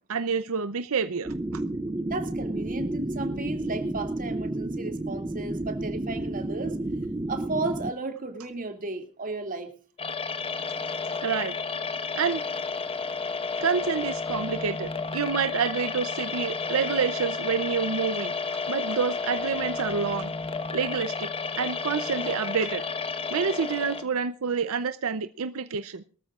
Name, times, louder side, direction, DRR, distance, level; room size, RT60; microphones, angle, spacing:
voice 1, 0.1-1.6 11.2-11.5 12.2-12.4 13.6-18.3 18.7-20.3 20.7-21.3 21.6-22.8 23.3-26.1, right 6 dB, 70° right, 12 dB, 0.7 m, -28 dB
sound 1, 1.2-7.9, right 1 dB, 20° right, 0.6 m, -31 dB
voice 2, 2.0-6.8 7.3-9.7, right 3 dB, 40° right, 5 dB, 2.5 m, -34 dB
sound 2, 10.0-24.0, left 4 dB, 25° left, 1.2 m, -32 dB
23.0 x 13.5 x 2.4 m, 0.43 s
head